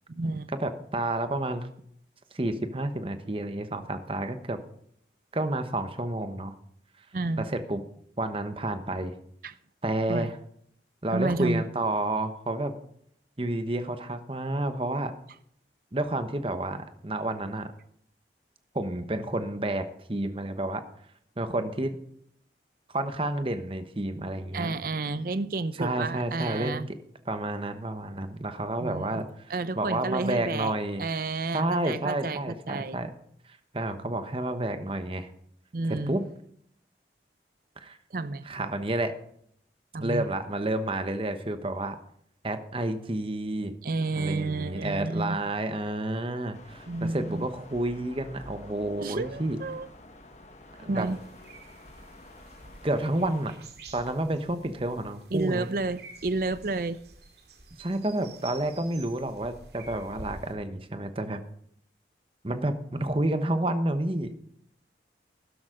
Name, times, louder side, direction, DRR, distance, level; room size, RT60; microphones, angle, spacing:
voice 1, 0.1-0.5 7.1-7.5 9.4-9.5 10.1-10.3 11.1-11.7 24.5-26.9 28.8-29.2 29.5-33.0 35.7-36.2 38.1-38.5 39.9-40.2 43.8-45.4 46.9-47.5 49.0-49.9 50.8-51.2 55.3-57.0, right 3 dB, 50° right, 0.6 m, -31 dB
voice 2, 0.6-1.7 2.3-4.6 5.3-6.5 7.4-7.8 8.2-9.1 9.8-10.4 11.0-12.8 13.4-15.1 15.9-17.7 18.7-20.8 21.4-22.0 22.9-24.8 25.8-26.8 27.3-29.3 29.7-31.1 31.5-33.1 33.7-35.3 35.9-36.2 37.8-38.0 38.4-39.1 40.0-42.0 42.4-43.7 44.1-49.6 50.8-51.1 52.8-53.5 53.9-55.7 57.8-61.4 62.4-64.3, right 1 dB, 30° right, 1.0 m, -30 dB
sound 1, 46.5-53.6, left 1 dB, 40° left, 1.4 m, -49 dB
sound 2, 51.0-60.5, right 2 dB, 70° right, 2.2 m, -49 dB
13.0 x 11.0 x 3.8 m
head